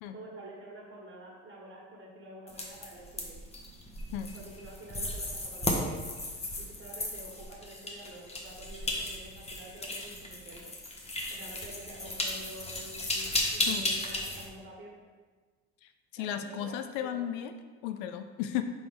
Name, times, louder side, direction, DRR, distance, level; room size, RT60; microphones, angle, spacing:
voice 1, 0.1-3.4 4.3-6.0 6.6-10.7 11.3-15.0 16.2-17.2, right 1 dB, 35° right, -2 dB, 1.4 m, -48 dB
sound 1, 2.5-14.5, left 1 dB, 20° left, 0.9 m, -35 dB
voice 2, 15.8-17.5 17.8-18.6, left 10 dB, 70° left, 8 dB, 0.5 m, -35 dB
4.2 x 3.6 x 3.5 m, 1.4 s
hypercardioid pair, 75°, 35 cm